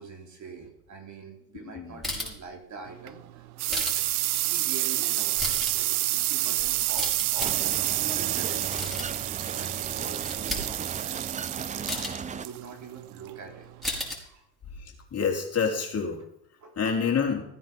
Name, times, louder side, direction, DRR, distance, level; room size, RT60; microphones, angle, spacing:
voice 1, 0.0-4.0 4.4-7.6 7.9-9.0 9.5-11.4 11.7-13.7 14.2-14.4 16.6-17.0, right 5 dB, 40° right, 2 dB, 3.5 m, -44 dB
sound 1, 2.0-2.4 3.7-4.0 5.2-5.8 6.6-7.5 8.5-9.3 9.8-9.9 10.2-10.6 11.9-12.1 13.8-14.2, left 1 dB, ahead, 5.2 m, -33 dB
sound 2, 2.9-14.1, right 16 dB, 90° right, 0.6 m, -29 dB
sound 3, 7.4-12.5, right 6 dB, 15° right, 0.6 m, -36 dB
voice 2, 15.1-16.2 16.8-17.4, left 6 dB, 35° left, 1 dB, 3.7 m, -27 dB
16.0 x 9.3 x 5.5 m, 0.80 s
hypercardioid pair, 70°, 43 cm